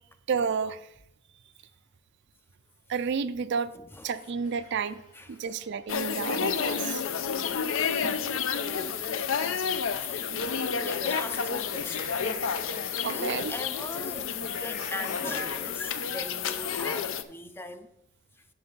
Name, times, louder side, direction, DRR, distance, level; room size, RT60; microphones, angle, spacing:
voice 1, 0.3-0.9 2.9-3.7 4.0-5.0 5.3-7.0 8.0-8.3 10.3-10.5 13.0-13.5, right 6 dB, 55° right, 0.4 m, -31 dB
voice 2, 3.7-4.1 5.1-5.3 7.9-8.1 8.6-9.1 10.0-10.3 10.8-12.6 13.0-17.9, left 1 dB, 10° left, 0.4 m, -40 dB
sound 1, 4.1-15.7, left 3 dB, 45° left, 3.7 m, -50 dB
sound 2, 5.9-17.2, left 6 dB, 65° left, 0.5 m, -30 dB
9.6 x 6.2 x 3.9 m
head